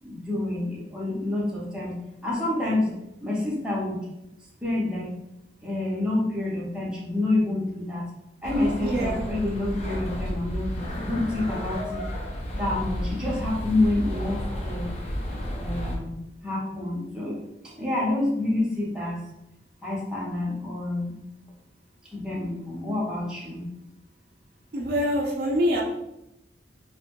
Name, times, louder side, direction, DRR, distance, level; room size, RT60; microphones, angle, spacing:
voice 1, 0.0-1.9 2.2-2.9 3.2-4.0 4.6-5.1 5.6-8.1 8.4-12.0 12.5-14.9 15.5-16.1 16.4-17.4 17.7-19.2 19.8-21.2 22.1-23.6, left 2 dB, 5° right, -6 dB, 0.6 m, -28 dB
sound 1, 8.4-16.0, equal, 35° left, 0.4 m, -32 dB
voice 2, 8.8-9.3 24.7-25.8, equal, 55° right, -1 dB, 0.4 m, -25 dB
2.6 x 2.1 x 2.9 m, 0.86 s
head